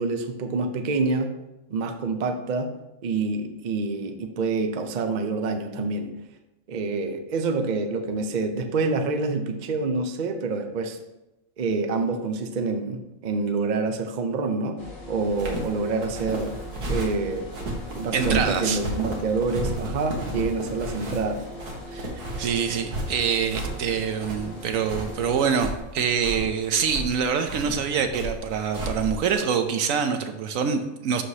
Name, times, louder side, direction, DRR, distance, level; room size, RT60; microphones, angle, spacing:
voice 1, 0.0-1.3 1.7-2.7 3.0-6.1 6.7-11.0 11.6-14.8 15.1-16.6 16.9-17.5 17.9-21.4, right 3 dB, 50° right, 6 dB, 0.5 m, -27 dB
sound 1, 14.8-25.4, left 1 dB, 65° left, 1.8 m, -40 dB
sound 2, 15.3-29.4, right 1 dB, 85° right, 1.9 m, -33 dB
voice 2, 18.1-18.8 21.9-22.1 22.4-31.2, right 6 dB, 70° right, 7 dB, 0.9 m, -25 dB
11.5 x 4.9 x 2.8 m, 0.96 s
omnidirectional pair, 1.6 m